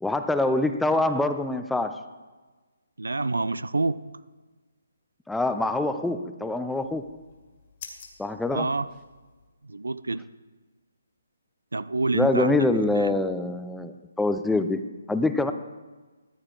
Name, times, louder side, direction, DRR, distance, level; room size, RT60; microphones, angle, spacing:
voice 1, 0.0-2.0 5.3-7.1 8.2-8.7 12.1-14.8 15.1-15.5, left 2 dB, 5° left, 8 dB, 0.5 m, -25 dB
voice 2, 3.0-4.0 8.5-8.9 9.7-10.2 11.7-12.6 12.9-13.1, right 3 dB, 85° right, 17 dB, 0.4 m, -27 dB
sound 1, 6.7-9.5, left 6 dB, 45° left, 2.0 m, -49 dB
14.0 x 8.8 x 3.8 m, 1.3 s
figure-of-eight pair, 145°, 0 cm